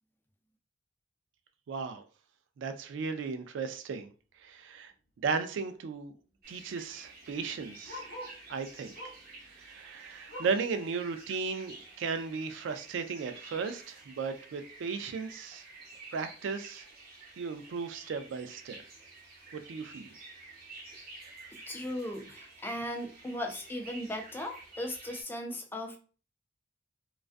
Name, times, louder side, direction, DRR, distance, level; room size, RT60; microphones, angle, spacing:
voice 1, 1.7-2.0 2.6-4.1 4.4-4.9 5.2-6.1 6.5-8.0 8.5-9.1 9.5-15.6 16.1-16.9 17.4-18.8 19.5-20.1, right 5 dB, 75° right, 0.3 m, -35 dB
Bark, 4.7-5.0 5.3-5.4 5.6-8.5 8.9-9.3 9.7-10.7 11.2-11.3 11.7-11.8 12.4-12.5, left 1 dB, 65° left, 0.8 m, -47 dB
sound 1, 6.4-25.2, right 3 dB, 50° right, 0.7 m, -51 dB
voice 2, 21.5-26.0, left 1 dB, 10° left, 0.3 m, -37 dB
2.4 x 2.2 x 2.4 m
head